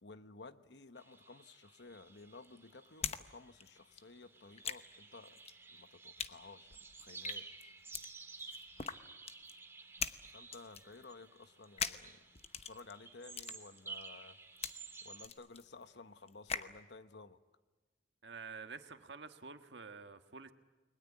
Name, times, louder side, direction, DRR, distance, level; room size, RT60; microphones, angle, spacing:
voice 1, 0.0-5.4 5.7-7.7 10.2-12.2 12.6-14.4 15.0-17.4, left 3 dB, 70° left, 11 dB, 1.1 m, -55 dB
sound 1, 1.0-15.3, right 4 dB, 15° right, 2.2 m, -53 dB
sound 2, 1.8-3.2 3.5-16.8, left 7 dB, 35° left, 0.9 m, -44 dB
voice 2, 18.2-20.5, right 4 dB, 75° right, 7 dB, 1.5 m, -49 dB
30.0 x 22.0 x 8.5 m, 1.2 s
head